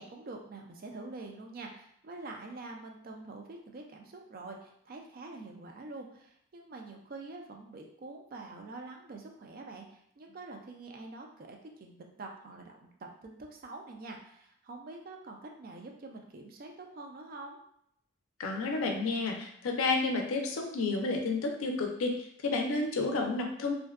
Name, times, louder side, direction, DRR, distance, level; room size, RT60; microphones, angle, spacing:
voice 1, 0.0-17.6, right 3 dB, 40° right, 2 dB, 0.3 m, -46 dB
voice 2, 18.4-23.7, left 3 dB, 75° left, 2 dB, 0.4 m, -31 dB
2.5 x 2.1 x 2.3 m, 0.71 s
head